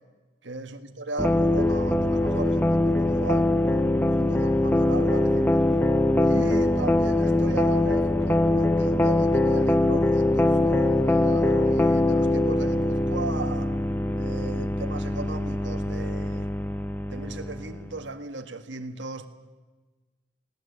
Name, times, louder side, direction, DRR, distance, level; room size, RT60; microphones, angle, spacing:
voice 1, 0.4-5.6 6.2-13.7 14.2-16.5 17.1-19.3, right 2 dB, 75° right, 1.8 m, -37 dB
sound 1, 1.2-17.9, left 1 dB, 10° left, 0.6 m, -23 dB
19.0 x 18.5 x 8.7 m
head